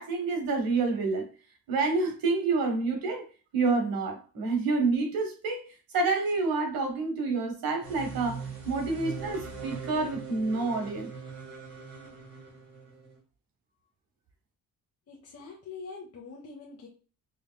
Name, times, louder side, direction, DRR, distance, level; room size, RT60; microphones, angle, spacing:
voice 1, 0.0-1.3 1.7-3.3 3.5-11.1, right 3 dB, 70° right, 1.4 m, -28 dB
sound 1, 7.8-13.2, right 4 dB, 40° right, 1.9 m, -41 dB
voice 2, 15.1-16.9, left 4 dB, 40° left, 1.1 m, -44 dB
4.9 x 3.2 x 2.2 m
cardioid pair, 95°, 36 cm